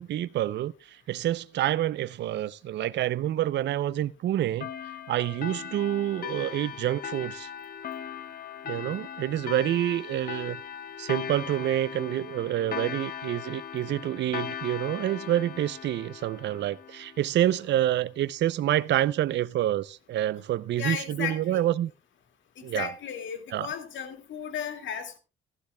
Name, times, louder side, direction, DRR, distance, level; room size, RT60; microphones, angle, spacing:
voice 1, 0.0-4.7 5.1-7.5 8.7-10.6 11.0-21.9 22.6-22.9 23.5-23.7, right 12 dB, 65° right, 0.5 m, -28 dB
sound 1, 4.6-17.7, left 8 dB, 50° left, 0.9 m, -39 dB
voice 2, 20.8-21.6 22.7-25.2, left 8 dB, 70° left, 2.1 m, -34 dB
15.5 x 12.0 x 2.2 m
cardioid pair, 90°, 20 cm